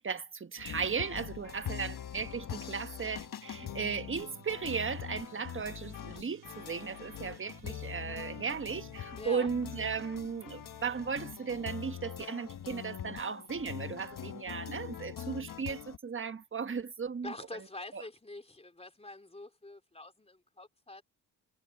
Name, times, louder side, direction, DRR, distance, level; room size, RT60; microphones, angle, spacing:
voice 1, 0.0-17.3 17.9-18.0, right 6 dB, 35° right, 1.3 m, -36 dB
sound 1, 0.6-16.0, left 9 dB, 60° left, 1.3 m, -43 dB
sound 2, 3.2-14.0, right 12 dB, 90° right, 4.9 m, -60 dB
voice 2, 9.2-9.5 17.2-21.0, left 2 dB, 15° left, 4.0 m, -46 dB
cardioid pair, 70°, 37 cm